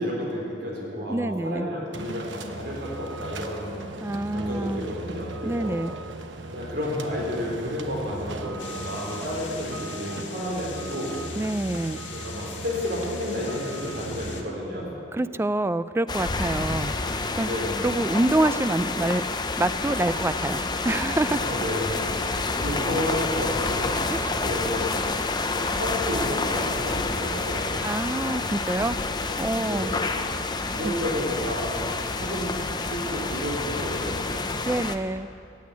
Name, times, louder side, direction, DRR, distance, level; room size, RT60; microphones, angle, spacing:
voice 1, 0.0-3.9 4.3-5.8 6.5-11.2 12.1-14.9 17.4-18.0 21.4-22.0 22.6-24.9 25.5-27.9 29.6-30.1 30.7-32.5 32.9-34.4, equal, 65° right, -3 dB, 3.9 m, -31 dB
voice 2, 1.1-1.7 4.0-4.9 5.4-5.9 11.4-12.0 15.1-16.9 17.4-17.5 17.8-19.2 19.6-21.4 24.1-24.3 27.8-29.0 29.4-29.9 30.8-31.0 34.7-35.3, right 2 dB, 15° right, 14 dB, 0.3 m, -26 dB
sound 1, 1.9-14.5, right 2 dB, 85° right, 1.0 m, -38 dB
sound 2, 8.6-14.4, left 6 dB, 85° left, 1.8 m, -41 dB
sound 3, 16.1-35.0, left 3 dB, 25° left, 0.7 m, -28 dB
15.5 x 8.6 x 9.4 m, 2.6 s
head